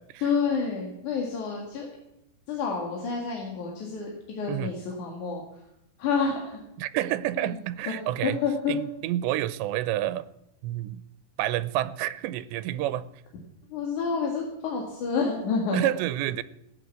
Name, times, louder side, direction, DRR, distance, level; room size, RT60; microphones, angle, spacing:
voice 1, 0.2-1.9 2.5-5.4 6.0-6.6 7.4-7.6 8.2-8.7 13.7-15.9, left 5 dB, 55° left, -1 dB, 3.0 m, -29 dB
voice 2, 6.8-8.4 8.7-10.3 10.6-11.0 11.4-13.1 15.7-16.4, right 14 dB, 90° right, 15 dB, 2.9 m, -29 dB
16.5 x 9.6 x 8.3 m, 0.82 s
omnidirectional pair, 4.9 m